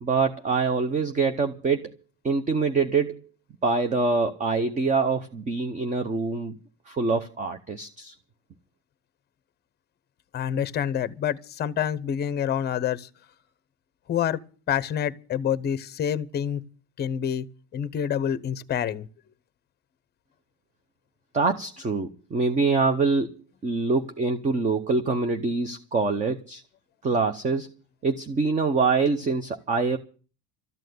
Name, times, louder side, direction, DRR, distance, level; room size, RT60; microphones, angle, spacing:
voice 1, 0.0-1.9 2.2-3.2 3.6-6.5 6.9-8.1 21.3-23.4 23.6-26.6 27.0-27.7 28.0-30.0, right 4 dB, 20° right, 0.8 m, -25 dB
voice 2, 10.3-13.1 14.1-14.4 14.7-16.6 17.0-17.5 17.7-19.1, left 9 dB, 25° left, 0.8 m, -27 dB
13.5 x 9.0 x 9.3 m
cardioid pair, 165°, 38 cm